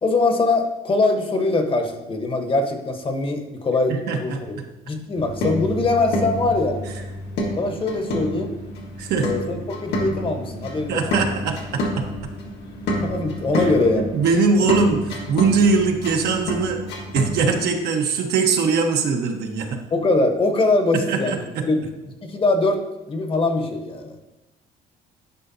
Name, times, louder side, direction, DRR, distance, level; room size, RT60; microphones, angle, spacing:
voice 1, 0.0-4.3 4.8-6.8 7.6-8.5 9.2-11.0 13.0-14.1 19.9-21.8 22.2-24.2, left 2 dB, 30° left, 5 dB, 1.0 m, -22 dB
voice 2, 3.9-4.6 9.0-9.3 10.9-12.0 13.5-16.8 17.1-19.8 21.1-21.7, right 4 dB, 70° right, 3 dB, 1.1 m, -22 dB
sound 1, 5.1-17.5, equal, 75° left, 1.5 m, -29 dB
10.5 x 5.0 x 2.7 m, 1.1 s
cardioid pair, 110°, 17 cm